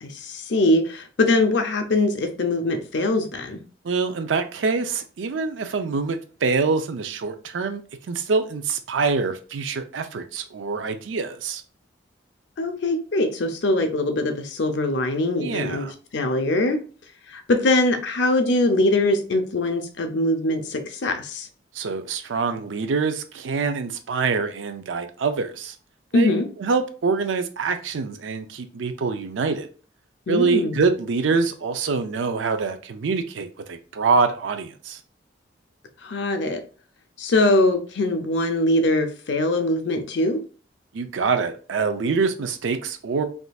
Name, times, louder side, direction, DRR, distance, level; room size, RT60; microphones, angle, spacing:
voice 1, 0.0-3.6 12.6-16.8 17.3-21.5 26.1-26.5 30.3-30.8 36.0-36.6 37.2-40.4, left 2 dB, 70° left, 6 dB, 0.6 m, -22 dB
voice 2, 3.8-7.8 8.1-11.6 15.4-15.9 21.7-25.8 26.1-26.3 26.6-29.7 30.3-35.0 40.9-43.2, right 4 dB, 90° right, 8 dB, 0.5 m, -25 dB
3.6 x 2.5 x 2.4 m, 0.38 s
head